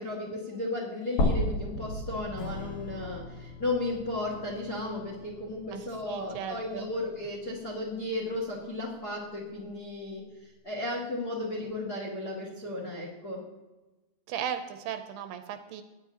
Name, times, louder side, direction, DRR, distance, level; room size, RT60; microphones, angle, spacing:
voice 1, 0.0-13.4, left 2 dB, 40° left, -3 dB, 1.5 m, -34 dB
sound 1, 1.2-5.3 5.7-5.8 7.2-7.3, left 1 dB, 60° left, 2.3 m, -33 dB
Strum, 2.4-9.2, left 7 dB, 85° left, 2.0 m, -48 dB
voice 2, 6.1-6.9 14.3-15.8, right 9 dB, 80° right, 8 dB, 2.6 m, -36 dB
17.0 x 9.6 x 2.9 m, 1.1 s
omnidirectional pair, 4.8 m